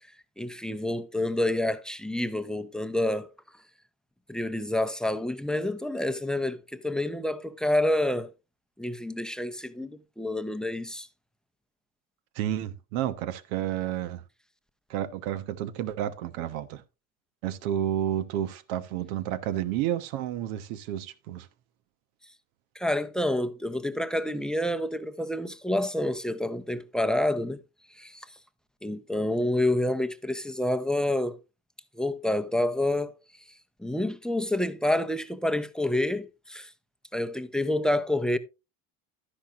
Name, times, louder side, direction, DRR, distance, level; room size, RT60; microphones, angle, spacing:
voice 1, 0.4-3.3 4.3-8.3 8.8-11.1 22.8-27.6 28.0-28.3 28.8-31.4 32.0-33.2 33.8-36.7 37.1-38.4, left 1 dB, ahead, 0.7 m, -28 dB
voice 2, 12.3-14.2 14.9-16.8 17.4-21.5, right 11 dB, 75° right, 1.2 m, -31 dB
12.0 x 10.0 x 2.5 m
supercardioid pair, 100°, 42 cm